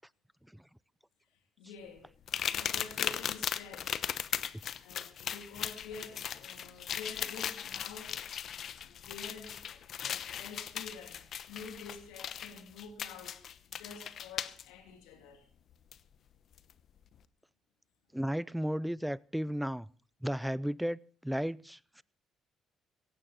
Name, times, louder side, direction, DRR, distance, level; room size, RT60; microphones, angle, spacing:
voice 1, 1.3-2.1 2.5-4.0 4.8-8.3 8.8-15.5, left 5 dB, 85° left, 3.1 m, -49 dB
sound 1, 2.3-14.6 15.9-16.0 16.6-16.7, left 9 dB, 60° left, 0.9 m, -38 dB
voice 2, 18.1-19.9 20.2-22.0, equal, 5° right, 0.6 m, -34 dB
17.0 x 15.5 x 4.2 m
supercardioid pair, 60°, 0 cm